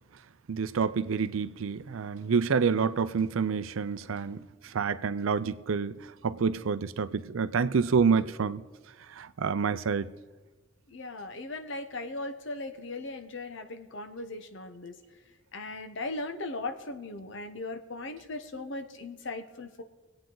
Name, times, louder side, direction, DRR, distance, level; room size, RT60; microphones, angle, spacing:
voice 1, 0.5-6.0 6.2-8.6 9.1-10.1, right 5 dB, 75° right, 0.5 m, -28 dB
voice 2, 10.9-15.0 15.5-19.8, left 2 dB, 60° left, 0.9 m, -38 dB
22.5 x 8.9 x 3.9 m
head